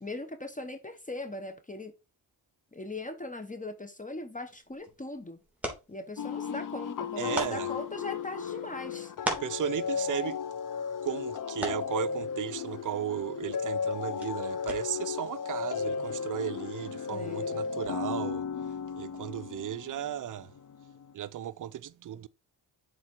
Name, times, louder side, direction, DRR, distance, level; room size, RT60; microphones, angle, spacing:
voice 1, 0.0-1.9 2.7-5.4 5.9-9.1 17.1-17.8, left 2 dB, 15° left, 1.0 m, -40 dB
sound 1, 4.4-15.2, right 1 dB, 5° right, 3.2 m, -42 dB
sound 2, 6.2-21.1, left 6 dB, 45° left, 0.9 m, -35 dB
voice 2, 7.2-7.7 9.3-10.4 11.0-18.5 19.0-20.5 21.1-22.3, right 11 dB, 45° right, 0.6 m, -35 dB
7.3 x 4.2 x 4.5 m
cardioid pair, 70°, 45 cm